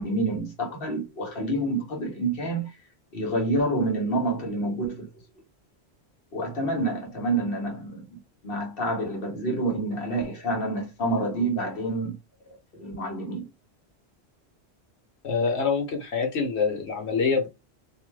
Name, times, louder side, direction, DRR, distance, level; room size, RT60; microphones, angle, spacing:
voice 1, 0.0-2.7 3.1-5.1 6.3-12.1 12.4-13.5, right 2 dB, 60° left, 1.1 m, -28 dB
voice 2, 15.2-17.5, left 5 dB, 80° left, 1.2 m, -25 dB
2.7 x 2.1 x 3.2 m
omnidirectional pair, 1.1 m